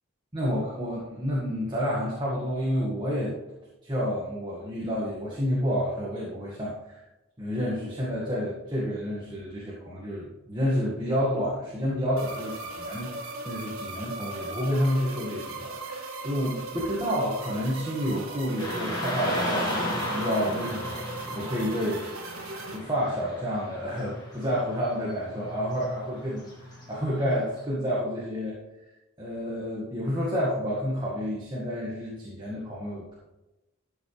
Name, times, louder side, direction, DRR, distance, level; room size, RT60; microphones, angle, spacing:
voice 1, 0.3-3.4 3.8-7.0 7.4-13.1 13.5-22.0 22.7-26.5 26.9-28.6 29.2-33.1, equal, 20° right, -6 dB, 1.9 m, -29 dB
sound 1, 12.2-22.8, right 3 dB, 85° right, 1.7 m, -38 dB
Car passing by / Traffic noise roadway noise, 18.6-27.6, left 1 dB, 20° left, 2.6 m, -35 dB
12.5 x 7.4 x 3.4 m, 0.99 s
head